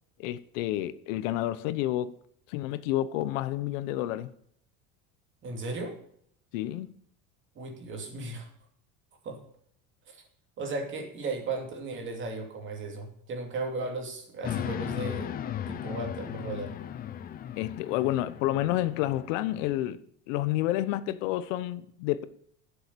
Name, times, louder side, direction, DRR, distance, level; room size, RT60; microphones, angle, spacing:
voice 1, 0.2-2.2 2.5-4.3 6.5-6.9 17.6-22.2, left 14 dB, 80° left, 0.9 m, -30 dB
voice 2, 5.4-6.0 7.6-8.5 9.2-9.4 10.1-10.2 10.6-16.7, right 3 dB, 30° right, 2.6 m, -36 dB
sound 1, 14.4-19.9, left 10 dB, 25° left, 0.5 m, -37 dB
12.0 x 7.1 x 6.8 m
cardioid pair, 160°, 38 cm